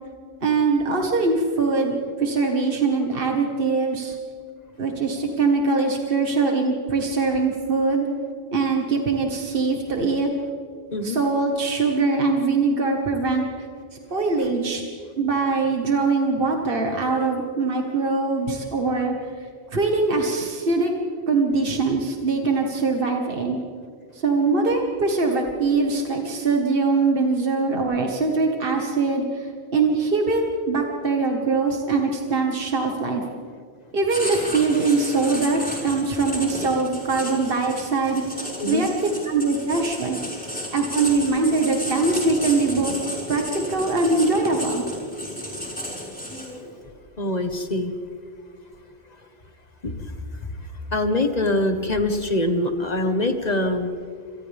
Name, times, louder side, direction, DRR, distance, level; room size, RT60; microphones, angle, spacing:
voice 1, 0.4-4.2 4.8-8.1 8.5-10.3 11.0-13.5 13.9-14.8 15.2-19.1 19.7-20.9 21.3-23.6 24.1-33.2 33.9-38.9 39.3-40.2 40.7-43.0 43.3-44.8, right 3 dB, 60° right, 1 dB, 2.0 m, -22 dB
Writing, 34.1-46.7, equal, 10° left, 5.8 m, -33 dB
voice 2, 47.2-47.9 49.8-49.9 50.9-53.9, left 1 dB, 40° left, 6 dB, 1.6 m, -23 dB
28.0 x 27.0 x 3.6 m, 2.3 s
omnidirectional pair, 1.1 m